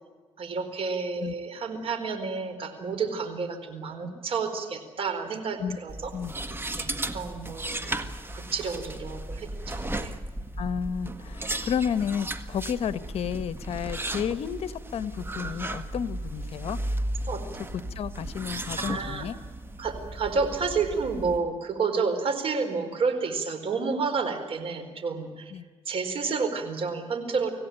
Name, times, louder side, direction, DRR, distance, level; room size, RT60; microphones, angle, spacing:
voice 1, 0.4-6.1 6.8-7.9 8.3-10.1 17.3-17.4 18.8-19.2 19.8-25.5 25.9-27.5, right 4 dB, 60° right, 8 dB, 4.5 m, -30 dB
sound 1, 5.9-21.4, right 1 dB, 20° right, 1.6 m, -35 dB
voice 2, 10.6-16.8 17.9-19.3 25.5-25.6, left 8 dB, 70° left, 13 dB, 1.1 m, -31 dB
26.0 x 16.5 x 9.1 m, 1.4 s
cardioid pair, 105°, 11 cm